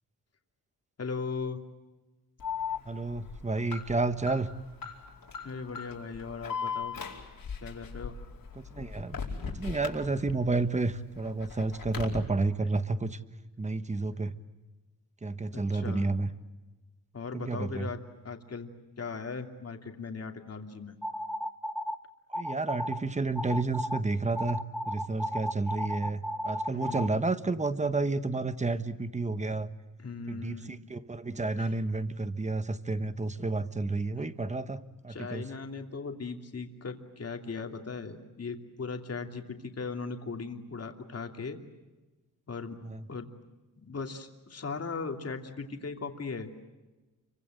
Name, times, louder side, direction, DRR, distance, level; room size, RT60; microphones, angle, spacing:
voice 1, 1.0-1.6 5.4-6.9 7.6-8.2 15.5-16.1 17.1-18.7 19.0-21.0 26.6-27.1 30.0-30.8 31.6-31.7 34.2-34.3 35.1-41.6 42.5-42.8 43.1-43.3 43.8-46.5, left 4 dB, 45° left, 4 dB, 2.9 m, -38 dB
Alarm, 2.4-10.6 10.9-12.2, left 6 dB, 80° left, 5.0 m, -38 dB
voice 2, 2.8-4.5 8.5-13.2 13.6-14.3 15.2-16.3 17.3-17.9 22.3-24.6 24.9-29.7 30.3-35.4 42.8-43.0, right 3 dB, 20° right, 11 dB, 1.3 m, -31 dB
sound 1, 21.0-22.0 22.3-23.0 23.4-24.0 24.4-27.1, equal, ahead, 0.9 m, -33 dB
30.0 x 24.0 x 7.9 m, 1.1 s
wide cardioid pair, 165°, 34 cm